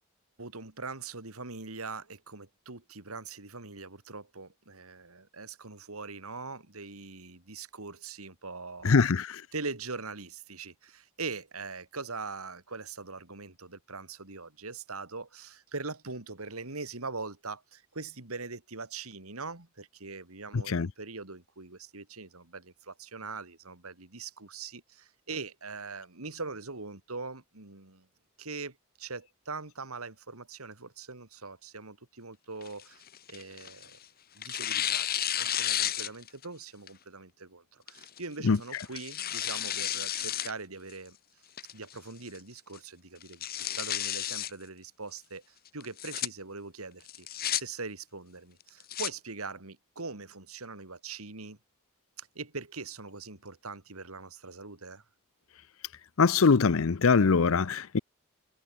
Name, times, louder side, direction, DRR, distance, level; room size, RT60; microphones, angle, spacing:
voice 1, 0.4-9.1 9.5-28.1 28.4-34.0 34.3-41.2 41.7-51.6 52.2-55.0, right 4 dB, 85° right, 2.9 m, -42 dB
voice 2, 8.8-9.3 20.7-20.9 38.5-38.6 56.2-58.0, left 4 dB, 70° left, 0.6 m, -22 dB
Tearing, 32.6-33.9 34.4-36.5 36.9-37.0 37.9-38.2 38.7-40.5 40.9-41.0 41.6-42.0 42.3-42.4 42.7-42.8 43.2-44.5 45.8-46.3 47.1-47.6 48.6-49.1, left 11 dB, 45° left, 1.8 m, -32 dB
head